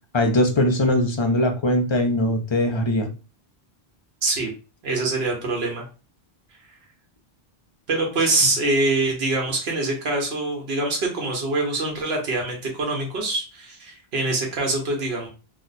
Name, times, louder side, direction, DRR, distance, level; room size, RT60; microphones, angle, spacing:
voice 1, 0.1-3.1, left 1 dB, 40° left, 4 dB, 0.4 m, -21 dB
voice 2, 4.8-5.8 7.9-15.3, right 2 dB, 80° right, 0 dB, 1.1 m, -24 dB
2.9 x 2.1 x 4.0 m, 0.33 s
omnidirectional pair, 1.0 m